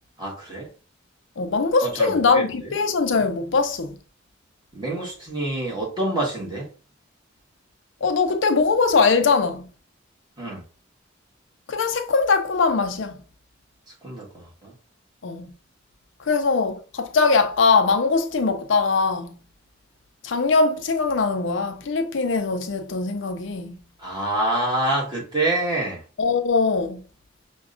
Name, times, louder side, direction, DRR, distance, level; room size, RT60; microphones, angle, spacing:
voice 1, 0.2-0.7 1.8-2.4 4.7-6.7 10.4-10.6 14.0-14.7 24.0-26.0, right 1 dB, 25° right, 1.4 m, -26 dB
voice 2, 1.4-4.0 8.0-9.7 11.7-13.2 15.2-15.5 16.3-19.4 20.2-23.7 26.2-27.0, left 4 dB, 70° left, 0.5 m, -21 dB
5.8 x 2.2 x 2.5 m
head